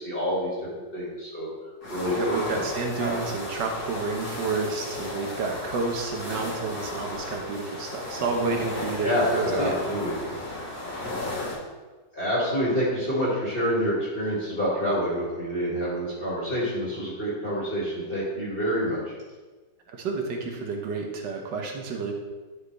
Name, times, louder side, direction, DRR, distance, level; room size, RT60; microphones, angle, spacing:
voice 1, 0.0-1.5 1.9-2.6 3.0-3.1 9.0-10.1 12.1-19.1, equal, 30° left, -7 dB, 2.2 m, -27 dB
sound 1, 1.8-11.5, left 2 dB, 60° left, 2.1 m, -34 dB
voice 2, 2.1-10.0 19.9-22.1, right 4 dB, 80° right, 2 dB, 1.7 m, -30 dB
11.0 x 4.8 x 3.3 m, 1.3 s
omnidirectional pair, 1.9 m